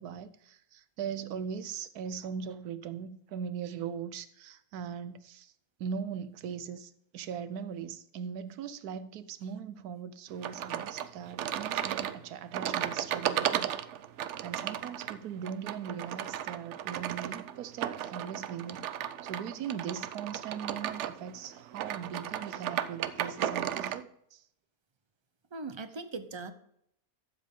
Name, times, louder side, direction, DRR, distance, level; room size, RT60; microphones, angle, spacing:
voice 1, 0.0-5.5 5.8-13.9 14.4-18.9 19.2-24.4, right 7 dB, 80° right, 1.2 m, -40 dB
sound 1, 10.4-24.0, right 10 dB, 65° right, 0.8 m, -35 dB
voice 2, 25.5-26.5, right 3 dB, 40° right, 0.4 m, -39 dB
13.0 x 7.6 x 3.7 m
omnidirectional pair, 1.6 m